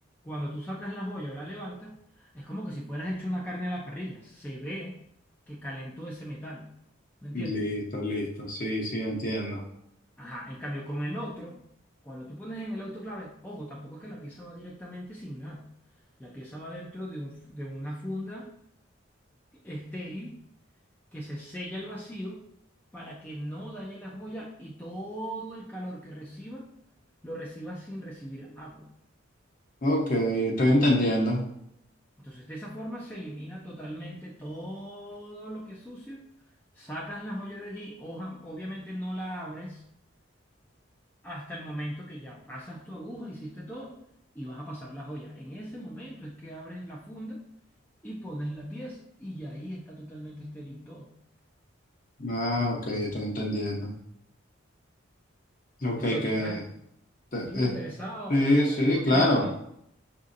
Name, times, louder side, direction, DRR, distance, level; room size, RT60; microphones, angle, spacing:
voice 1, 0.2-5.0 5.5-6.7 7.2-7.7 10.2-11.6 12.0-15.6 16.2-18.5 19.6-20.4 21.1-22.4 22.9-26.7 27.2-28.9 32.2-36.2 36.7-39.8 41.2-43.9 44.3-47.4 48.0-51.1 56.0-56.7 57.4-59.5, equal, 10° left, -4 dB, 0.4 m, -38 dB
voice 2, 7.3-9.6 29.8-31.5 52.2-53.9 55.8-56.6 57.3-57.7 58.3-59.4, left 1 dB, 40° left, -1 dB, 0.9 m, -26 dB
6.0 x 2.7 x 2.5 m, 0.74 s
head